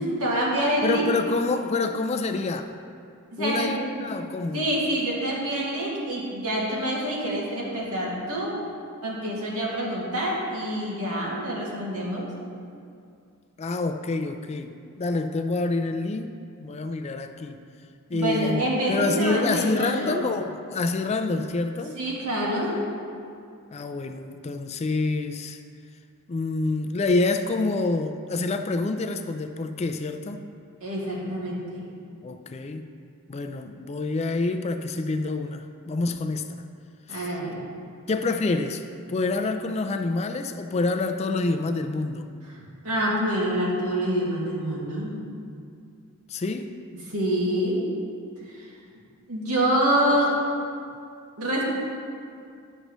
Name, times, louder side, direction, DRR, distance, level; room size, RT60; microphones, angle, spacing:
voice 1, 0.0-1.1 3.3-3.7 4.0-4.1 4.5-8.6 9.0-12.3 18.1-20.2 21.9-22.8 30.8-31.8 37.1-37.6 42.8-45.1 47.1-47.9 48.5-48.7 49.3-50.3 51.4-51.6, right 1 dB, 90° right, -5 dB, 2.0 m, -26 dB
voice 2, 0.8-2.7 3.4-4.7 13.6-17.6 18.1-18.6 18.9-21.9 23.7-25.6 26.3-30.4 32.2-32.9 33.3-36.6 37.1-37.3 38.1-38.8 39.1-42.3 46.3-46.7, left 3 dB, 30° left, 7 dB, 0.3 m, -27 dB
11.0 x 6.6 x 3.1 m, 2.3 s
head